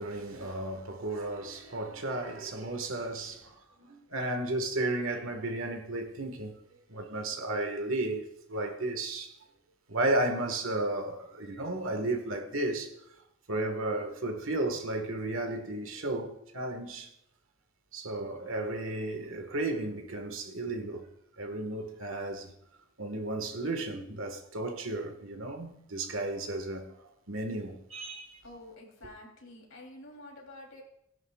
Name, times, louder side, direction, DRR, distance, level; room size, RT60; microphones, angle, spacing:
voice 1, 0.0-6.6 6.9-9.3 9.9-12.9 13.5-17.1 17.9-21.1 21.4-22.5 23.0-27.0 27.3-28.4, right 2 dB, 80° right, 1.6 m, -33 dB
voice 2, 28.4-30.8, left 1 dB, 75° left, 3.3 m, -48 dB
18.5 x 11.0 x 2.4 m
head